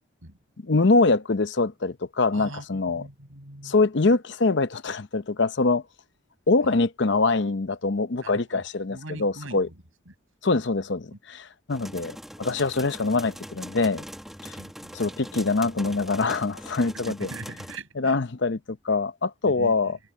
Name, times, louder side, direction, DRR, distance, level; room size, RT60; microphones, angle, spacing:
voice 1, 0.6-3.1 3.6-5.8 6.5-9.7 10.4-14.0 14.4-14.5 14.9-17.3 18.0-20.0, left 3 dB, 60° left, 0.7 m, -24 dB
voice 2, 2.3-3.7 6.6-6.8 8.2-9.7 10.1-10.2 11.1-11.2 14.6-15.1 17.1-18.2 19.5-19.9, right 2 dB, 90° right, 6.1 m, -41 dB
sound 1, 11.7-17.8, equal, ahead, 1.6 m, -41 dB
head